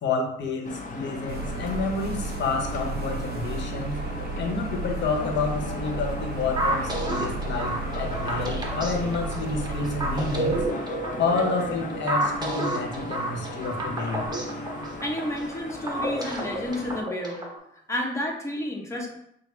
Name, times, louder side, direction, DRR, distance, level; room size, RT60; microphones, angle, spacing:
voice 1, 0.0-4.0 4.4-14.3, left 3 dB, 65° left, 2 dB, 0.9 m, -29 dB
sound 1, 0.6-17.0, left 2 dB, 40° left, 0.6 m, -37 dB
sound 2, 1.3-10.7, right 3 dB, 55° right, 0.5 m, -34 dB
sound 3, 6.6-17.6, right 1 dB, 20° right, 1.0 m, -31 dB
voice 2, 15.0-17.4 17.9-19.2, left 1 dB, 15° left, 0 dB, 1.0 m, -31 dB
6.1 x 2.1 x 3.3 m, 0.75 s
cardioid pair, 90°, 20 cm